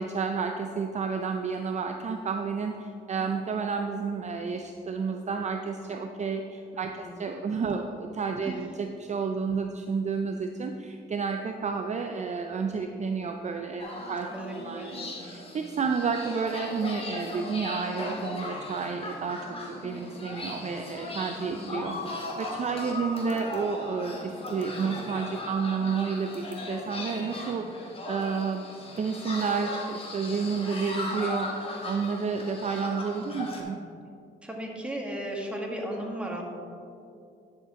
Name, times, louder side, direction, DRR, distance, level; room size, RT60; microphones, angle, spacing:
voice 1, 0.0-28.7 29.0-33.8, right 5 dB, 35° right, 5 dB, 0.5 m, -31 dB
voice 2, 6.7-7.2 7.7-7.8 8.4-8.6 14.3-14.9 21.5-21.9 34.4-36.4, right 1 dB, 5° right, -1 dB, 1.6 m, -36 dB
sound 1, 13.8-33.6, left 2 dB, 30° left, 1.7 m, -38 dB
10.5 x 6.7 x 3.7 m, 2.5 s
cardioid pair, 90°, 20 cm